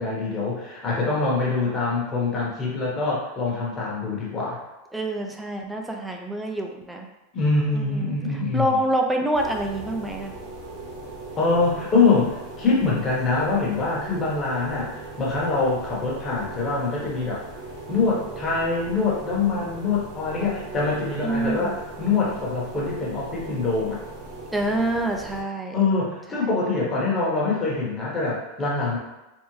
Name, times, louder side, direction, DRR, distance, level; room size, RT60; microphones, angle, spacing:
voice 1, 0.0-4.6 7.3-8.8 11.4-17.4 17.9-24.0 25.7-29.0, left 3 dB, 25° left, -5 dB, 1.1 m, -24 dB
voice 2, 4.9-7.1 7.7-8.2 8.5-10.3 21.2-21.8 24.5-25.8, right 1 dB, 5° right, 2 dB, 0.4 m, -26 dB
sound 1, 9.3-25.4, right 2 dB, 50° right, 1.1 m, -39 dB
3.5 x 2.0 x 3.1 m, 1.0 s
supercardioid pair, 125°, 0 cm